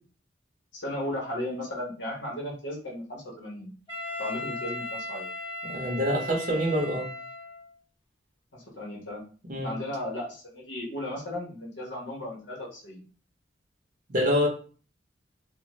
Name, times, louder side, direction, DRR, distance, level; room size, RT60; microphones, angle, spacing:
voice 1, 0.7-3.7 4.2-5.3 8.5-9.2 9.6-13.0, left 1 dB, 75° left, 1.0 m, -35 dB
Wind instrument woodwind instrument, 3.9-7.7, left 1 dB, 30° left, 1.2 m, -37 dB
voice 2, 5.6-7.1 9.5-9.7 14.1-14.5, equal, 45° right, 0.6 m, -26 dB
2.4 x 2.1 x 3.0 m
head